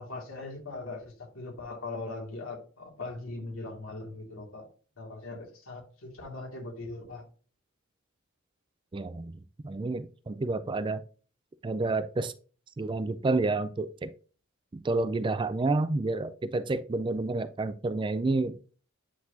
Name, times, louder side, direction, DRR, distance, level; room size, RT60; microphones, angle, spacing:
voice 1, 0.0-4.6 5.0-7.2, left 2 dB, 70° left, 2.6 m, -40 dB
voice 2, 8.9-9.3 9.6-11.0 11.6-12.3 12.8-14.1 14.7-18.6, right 3 dB, 25° right, 0.4 m, -29 dB
9.6 x 4.1 x 2.8 m
head